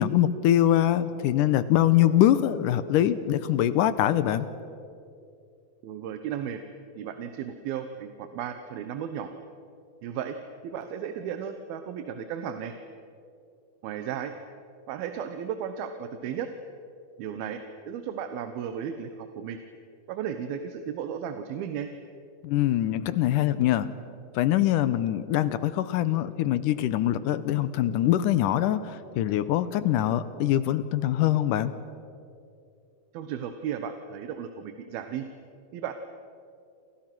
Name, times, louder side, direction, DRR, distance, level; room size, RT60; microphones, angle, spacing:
voice 1, 0.0-4.5 22.4-23.9 24.3-31.8, left 12 dB, 75° left, 13 dB, 2.0 m, -23 dB
voice 2, 5.8-6.6 7.0-9.3 10.0-10.4 10.6-12.7 13.8-14.3 14.9-16.5 17.2-19.6 20.1-21.9 33.1-35.2 35.7-35.9, right 8 dB, 75° right, 8 dB, 2.9 m, -34 dB
29.0 x 28.0 x 6.1 m, 2.6 s
omnidirectional pair, 4.5 m